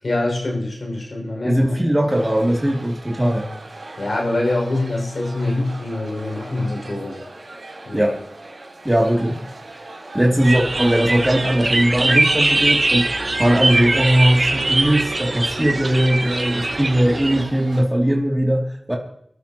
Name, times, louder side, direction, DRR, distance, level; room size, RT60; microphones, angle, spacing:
voice 1, 0.0-1.7 3.9-7.3 7.9-8.1, left 2 dB, 75° left, 0 dB, 6.0 m, -24 dB
voice 2, 1.4-3.5 7.9-8.2 8.8-9.4 10.1-19.0, right 1 dB, 15° right, -1 dB, 2.7 m, -19 dB
sound 1, 2.1-17.8, right 2 dB, 75° right, 3.9 m, -39 dB
sound 2, 10.4-17.4, right 2 dB, 55° right, 1.1 m, -21 dB
23.5 x 13.0 x 3.0 m, 0.67 s
cardioid pair, 45°, 0 cm